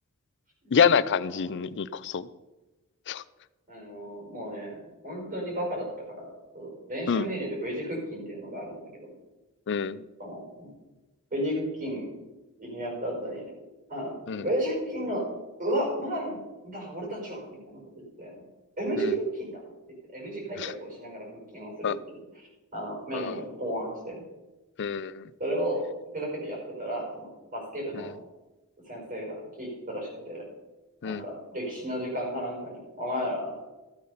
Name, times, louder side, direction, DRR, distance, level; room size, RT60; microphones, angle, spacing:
voice 1, 0.7-2.3 3.1-3.2 7.1-7.3 9.7-10.0 14.3-14.4 19.0-19.1 20.6-20.7 21.8-22.0 23.1-23.3 24.8-25.2 27.9-28.1 31.0-31.2, left 6 dB, 55° left, 17 dB, 0.5 m, -26 dB
voice 2, 3.7-9.1 10.2-10.7 11.3-12.1 12.6-13.4 13.9-15.2 15.6-17.8 18.2-18.3 18.8-19.6 20.1-21.3 21.5-22.2 22.7-24.2 25.4-25.8 26.1-28.1 28.9-30.5 31.0-33.7, right 1 dB, 40° right, -2 dB, 5.3 m, -33 dB
14.0 x 8.6 x 5.6 m, 1.1 s
head